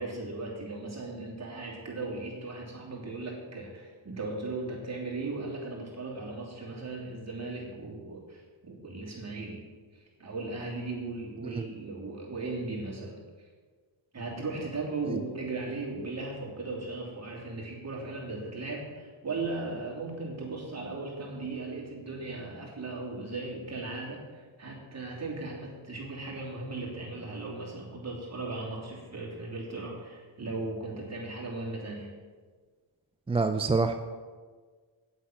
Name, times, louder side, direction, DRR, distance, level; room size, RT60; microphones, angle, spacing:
voice 1, 0.0-9.6 10.2-13.5 14.1-32.1, right 3 dB, 35° right, -4 dB, 3.1 m, -37 dB
voice 2, 33.3-33.9, right 3 dB, 15° right, 7 dB, 0.3 m, -27 dB
8.6 x 8.1 x 6.1 m, 1.5 s
wide cardioid pair, 115°, 48 cm